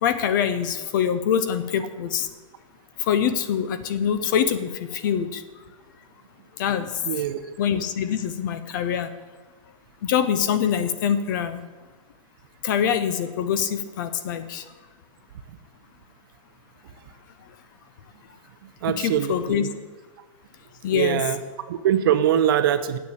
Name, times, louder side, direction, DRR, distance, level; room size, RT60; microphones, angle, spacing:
voice 1, 0.0-2.3 3.0-5.4 6.6-7.0 7.6-9.1 10.0-11.6 12.6-14.6 18.9-19.7 20.8-21.2, left 8 dB, 35° left, 11 dB, 0.7 m, -24 dB
voice 2, 7.0-7.6 18.6-19.7 20.9-21.4 21.7-23.0, right 10 dB, 40° right, 11 dB, 0.7 m, -23 dB
9.5 x 7.3 x 8.6 m, 1.3 s
hypercardioid pair, 165°, 18 cm